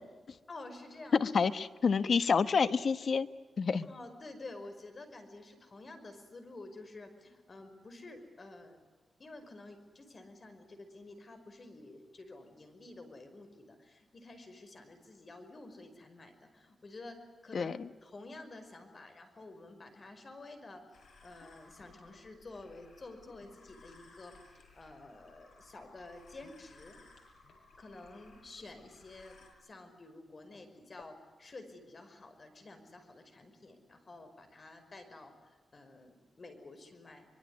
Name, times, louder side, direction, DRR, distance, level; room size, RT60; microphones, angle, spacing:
voice 1, 0.5-1.2 3.8-8.8 9.2-17.2 17.4-17.7 18.0-20.8 21.2-27.0 27.8-37.3, left 2 dB, 40° left, 7 dB, 5.3 m, -50 dB
voice 2, 1.1-3.3 3.6-3.9 17.5-17.8, left 5 dB, 60° left, 12 dB, 1.2 m, -28 dB
sound 1, 20.9-29.5, left 3 dB, 75° left, 7.3 m, -60 dB
25.0 x 23.0 x 9.6 m, 1.3 s
wide cardioid pair, 115°, 0 cm